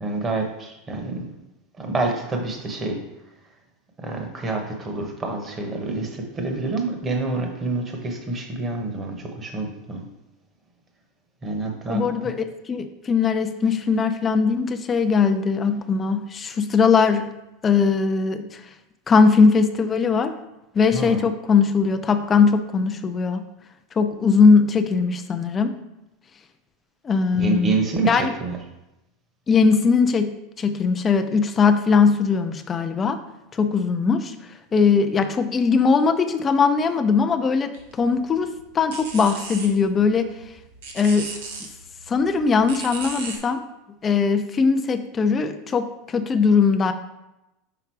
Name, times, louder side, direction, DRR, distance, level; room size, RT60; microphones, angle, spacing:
voice 1, 0.0-1.3 1.8-3.0 4.0-10.0 11.4-12.3 20.9-21.2 27.3-28.6, right 3 dB, 25° right, 3 dB, 1.1 m, -27 dB
voice 2, 11.9-12.4 12.7-17.3 17.6-18.6 19.1-20.3 20.7-23.4 24.0-25.7 27.0-27.8 28.1-28.3 29.5-30.3 30.6-33.2 33.6-34.3 34.7-40.3 40.9-41.3 42.1-43.6 44.0-46.9, left 5 dB, 25° left, 8 dB, 0.5 m, -20 dB
sound 1, 37.7-43.4, right 4 dB, 85° right, 1.1 m, -38 dB
5.9 x 3.8 x 4.6 m, 0.93 s
supercardioid pair, 130°, 0 cm